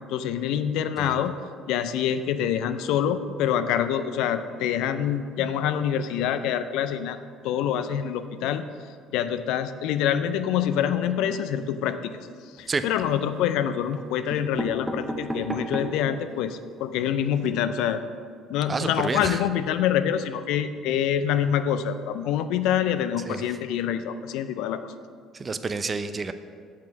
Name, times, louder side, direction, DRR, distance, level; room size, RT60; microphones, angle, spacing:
voice 1, 0.1-1.3 1.7-7.2 7.4-8.6 9.1-12.1 12.6-18.0 18.5-24.9, left 9 dB, 70° left, 11 dB, 0.4 m, -26 dB
sound 1, 12.6-13.2 13.9-14.0 14.3-16.1 16.6-16.7 16.9-17.0 17.3-17.5, right 1 dB, 10° right, 1.1 m, -33 dB
voice 2, 18.7-19.4 23.3-23.4 25.3-26.3, right 4 dB, 30° right, 11 dB, 0.5 m, -29 dB
6.9 x 5.8 x 5.9 m, 2.1 s
hypercardioid pair, 60°, 0 cm